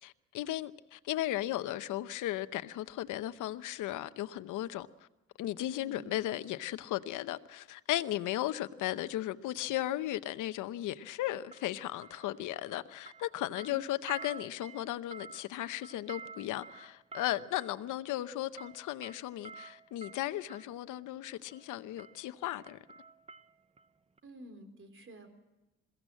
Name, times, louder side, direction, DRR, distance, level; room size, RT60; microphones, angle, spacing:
voice 1, 0.0-4.9 5.4-22.8, left 14 dB, 85° left, 0.8 m, -36 dB
voice 2, 5.7-6.2 13.7-13.8 24.2-25.3, equal, 45° right, 3.9 m, -50 dB
sound 1, 9.6-9.8 11.5-12.8 13.0-20.7 21.5-21.7 22.0-23.9 24.2-24.3, right 4 dB, 20° right, 0.7 m, -50 dB
22.0 x 16.5 x 7.6 m
cardioid pair, 90°, 30 cm